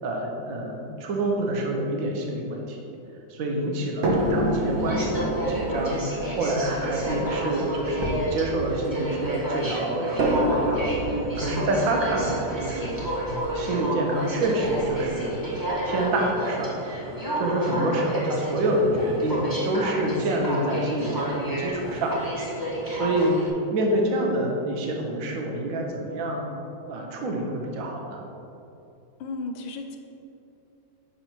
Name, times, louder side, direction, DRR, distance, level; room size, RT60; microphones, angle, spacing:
voice 1, 0.0-2.8 3.3-10.9 11.4-12.9 13.5-16.8 17.4-22.2 22.9-23.4 23.7-26.5 26.9-28.2, right 1 dB, 50° right, 0 dB, 1.2 m, -27 dB
sound 1, 4.0-9.2 10.2-14.2 15.1-15.2 15.7-15.8, right 1 dB, 70° right, 0.6 m, -29 dB
Aircraft, 4.1-23.5, right 1 dB, 15° right, 0.9 m, -31 dB
voice 2, 7.0-7.6 17.8-18.1 29.2-30.0, left 3 dB, 85° left, 3 dB, 1.4 m, -35 dB
sound 2, 8.0-12.6 13.3-13.9 14.6-17.6 18.8-20.9 21.6-23.0 23.5-23.6, left 1 dB, 20° left, 0.8 m, -40 dB
7.1 x 5.2 x 4.4 m, 2.9 s
omnidirectional pair, 2.2 m